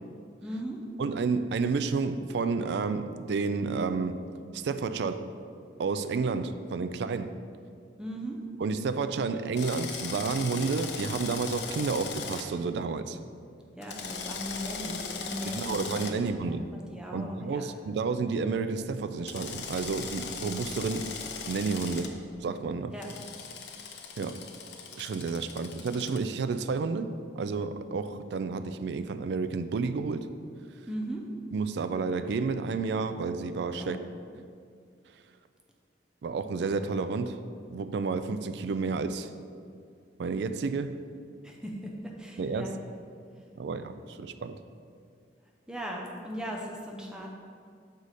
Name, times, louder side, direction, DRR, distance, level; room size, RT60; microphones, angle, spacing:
voice 1, 0.4-0.8 8.0-8.4 13.8-16.2 16.5-17.7 22.9-23.1 30.9-31.2 33.8-34.1 41.4-41.9 42.2-42.7 45.7-47.3, equal, 5° right, -1 dB, 0.5 m, -38 dB
voice 2, 1.0-4.2 4.5-5.3 5.8-7.4 8.6-13.2 15.4-16.7 17.1-21.1 21.5-22.9 24.2-24.5 25.0-30.3 31.5-34.0 36.2-37.4 37.7-39.3 40.2-41.0 42.4-42.8 43.6-44.6, right 4 dB, 70° right, 11 dB, 0.3 m, -31 dB
Drill, 9.6-12.4 13.8-16.1 19.3-22.1 23.0-26.2, left 5 dB, 70° left, 0.6 m, -39 dB
6.4 x 4.8 x 4.1 m, 2.2 s
head